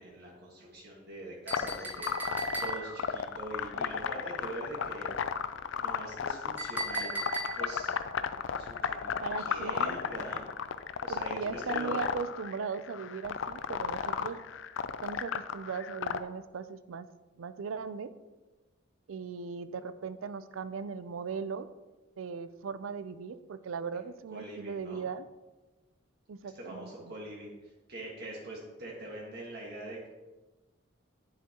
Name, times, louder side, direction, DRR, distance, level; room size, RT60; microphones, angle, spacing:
voice 1, 0.0-5.1 5.8-7.2 7.5-7.9 8.5-10.5 11.0-11.9 13.8-14.3 24.3-25.0 26.4-30.1, right 1 dB, 50° right, -4 dB, 1.6 m, -43 dB
sound 1, 1.5-16.2, left 7 dB, 70° left, 0.4 m, -34 dB
Chink clink, 1.5-3.1 6.6-7.9, right 3 dB, 10° right, 1.4 m, -37 dB
voice 2, 9.2-10.0 11.1-14.4 15.0-17.1 17.4-18.1 19.1-21.7 22.2-25.3 26.3-27.1, right 5 dB, 85° right, 13 dB, 0.5 m, -38 dB
9.6 x 7.4 x 2.9 m, 1.2 s
head